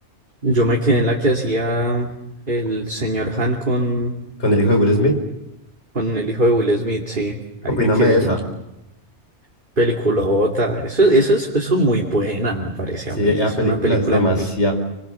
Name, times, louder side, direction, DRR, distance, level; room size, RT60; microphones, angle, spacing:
voice 1, 0.4-2.1 2.5-4.1 5.9-7.4 7.6-8.4 9.8-14.5, right 1 dB, 45° right, -1 dB, 2.8 m, -20 dB
voice 2, 4.4-5.2 7.7-8.4 13.2-14.7, left 1 dB, 75° left, 5 dB, 5.1 m, -18 dB
29.0 x 23.0 x 7.2 m, 0.86 s
omnidirectional pair, 1.2 m